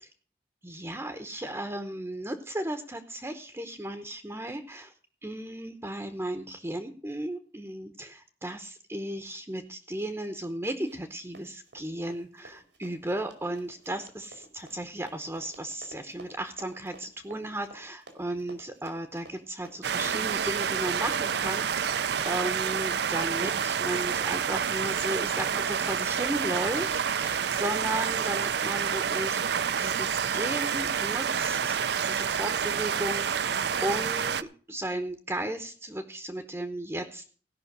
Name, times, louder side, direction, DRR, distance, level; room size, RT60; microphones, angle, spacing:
voice 1, 0.6-4.9 5.2-31.8 32.0-37.2, right 1 dB, 15° right, 8 dB, 0.8 m, -35 dB
Run, 10.8-11.1 11.3-26.4 26.7-26.9 27.3-27.4 28.0-28.1, right 2 dB, 90° right, 2.4 m, -51 dB
sound 1, 19.8-34.4, right 7 dB, 65° right, 0.5 m, -28 dB
17.0 x 5.7 x 6.6 m, 0.42 s
head